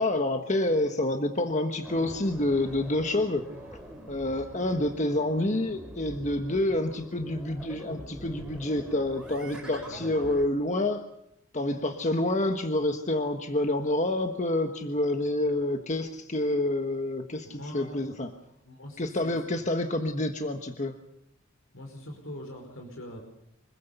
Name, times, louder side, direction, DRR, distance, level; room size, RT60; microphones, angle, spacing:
voice 1, 0.0-3.5 4.1-11.0 11.5-18.3 19.0-20.9, left 1 dB, 35° left, 6 dB, 1.4 m, -28 dB
sound 1, 1.8-10.4, equal, 5° right, 4.8 m, -45 dB
voice 2, 9.4-10.1 17.4-18.1 18.6-19.6 21.7-23.2, left 1 dB, 70° left, 3 dB, 4.9 m, -43 dB
25.5 x 21.0 x 6.9 m, 0.74 s
head